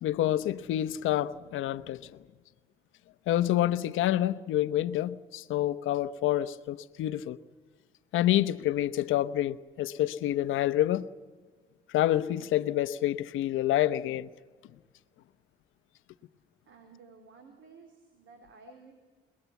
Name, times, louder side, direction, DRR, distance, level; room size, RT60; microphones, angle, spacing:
voice 1, 0.0-2.0 3.3-7.4 8.1-11.1 11.9-14.3, left 13 dB, 85° left, 0.9 m, -28 dB
voice 2, 16.7-18.9, right 5 dB, 75° right, 4.2 m, -54 dB
28.5 x 20.0 x 8.3 m
cardioid pair, 90°, 20 cm